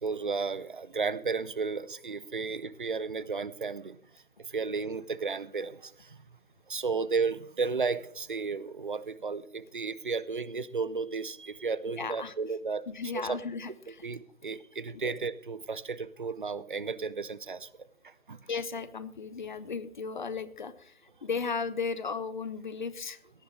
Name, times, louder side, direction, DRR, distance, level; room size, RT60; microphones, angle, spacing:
voice 1, 0.0-4.0 4.5-6.2 6.7-12.8 13.1-13.4 14.0-17.7 18.0-18.5, right 4 dB, 40° right, 19 dB, 0.5 m, -33 dB
voice 2, 11.9-12.3 12.9-14.1 14.9-15.1 18.5-23.2, left 5 dB, 35° left, 15 dB, 0.7 m, -35 dB
17.5 x 10.5 x 3.2 m, 0.67 s
figure-of-eight pair, 150°, 42 cm